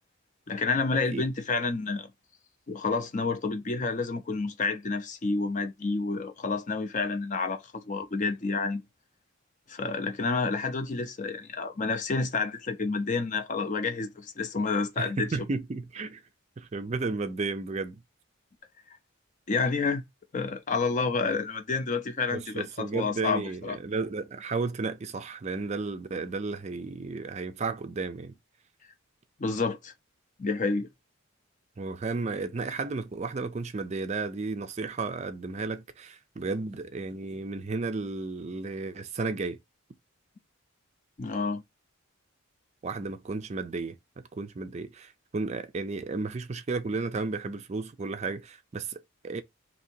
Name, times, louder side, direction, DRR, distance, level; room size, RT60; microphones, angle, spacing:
voice 1, 0.5-2.1 2.7-8.8 9.7-15.3 19.5-20.0 20.3-23.8 29.4-29.9 30.4-30.9 41.2-41.6, left 4 dB, 35° left, 0.5 m, -29 dB
voice 2, 15.0-16.2 16.6-18.0 22.3-28.3 31.8-39.6 42.8-43.9 44.3-49.4, right 3 dB, 30° right, 0.4 m, -33 dB
2.8 x 2.8 x 4.2 m
head